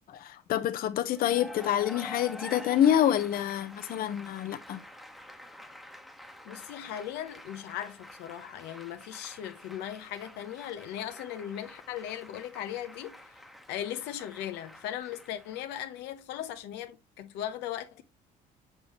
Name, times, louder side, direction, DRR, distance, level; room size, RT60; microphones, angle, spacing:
voice 1, 0.1-4.8, left 10 dB, 60° left, 0.8 m, -27 dB
Cheering / Applause, 1.1-16.0, left 1 dB, ahead, 1.0 m, -48 dB
voice 2, 6.4-13.4 13.7-18.0, left 11 dB, 90° left, 0.8 m, -38 dB
6.9 x 5.6 x 3.0 m
cardioid pair, 110°, 17 cm